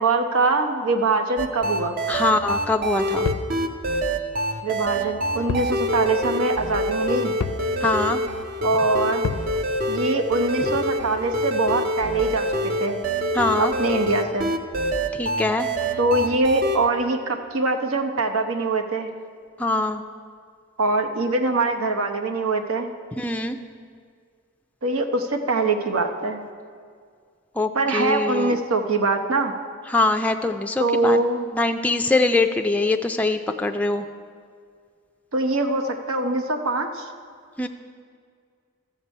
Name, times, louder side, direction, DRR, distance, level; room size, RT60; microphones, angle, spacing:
voice 1, 0.0-2.0 4.6-7.3 8.6-9.3 9.9-13.0 13.6-14.5 16.0-19.1 20.8-22.9 24.8-26.4 27.7-29.5 30.8-31.5 35.3-37.1, right 3 dB, 80° right, 5 dB, 0.9 m, -23 dB
sound 1, 1.4-16.8, equal, 40° right, 0.6 m, -26 dB
voice 2, 2.1-3.3 7.8-8.2 13.3-13.7 15.2-15.7 19.6-20.0 23.2-23.6 27.6-28.6 29.9-31.2 31.5-34.1 37.6-37.7, left 2 dB, 5° left, 5 dB, 0.3 m, -23 dB
sound 2, 3.2-3.6 5.5-5.8 6.1-6.2 7.4-7.7 9.2-9.5, left 5 dB, 85° left, 0.5 m, -28 dB
13.5 x 7.4 x 5.4 m, 2.1 s
head